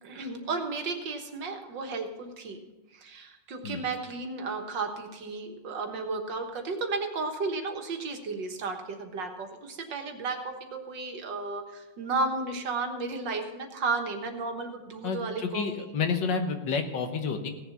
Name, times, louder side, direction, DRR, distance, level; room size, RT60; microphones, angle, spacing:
voice 1, 0.0-2.6 2.9-15.9, right 3 dB, 90° right, 4 dB, 2.1 m, -33 dB
voice 2, 15.0-17.5, left 5 dB, 90° left, 6 dB, 1.9 m, -30 dB
17.0 x 7.3 x 5.8 m, 1.1 s
omnidirectional pair, 1.9 m